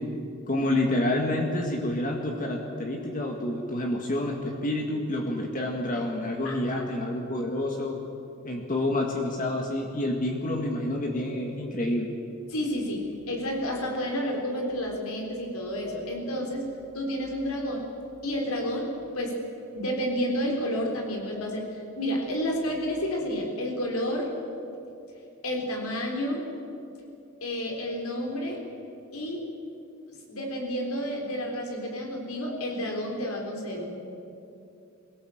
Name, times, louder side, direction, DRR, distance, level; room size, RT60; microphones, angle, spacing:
voice 1, 0.5-8.0 8.5-12.1, left 1 dB, 40° left, 1 dB, 1.8 m, -28 dB
voice 2, 6.4-6.8 12.5-16.7 16.9-17.9 18.2-19.4 19.7-24.3 25.4-26.4 27.4-28.6 29.1-29.5 30.3-34.0, equal, 80° left, 1 dB, 4.0 m, -30 dB
22.5 x 17.0 x 7.9 m, 2.7 s
head